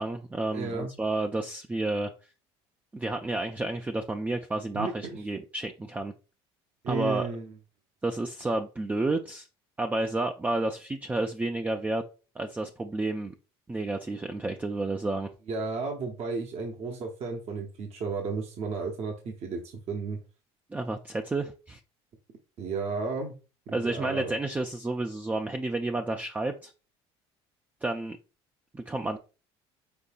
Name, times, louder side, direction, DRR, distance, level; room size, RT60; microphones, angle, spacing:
voice 1, 0.0-2.1 2.9-6.1 6.9-7.3 8.0-9.5 9.8-12.0 12.4-13.3 13.7-15.3 20.7-21.8 23.7-26.7 27.8-28.2 28.7-29.2, right 2 dB, 10° right, 4 dB, 0.4 m, -30 dB
voice 2, 0.5-0.9 4.7-5.2 6.8-7.5 15.5-20.2 22.6-23.4 23.7-24.3, right 4 dB, 50° right, 2 dB, 0.9 m, -33 dB
5.3 x 3.7 x 2.4 m, 0.34 s
supercardioid pair, 95°, 13 cm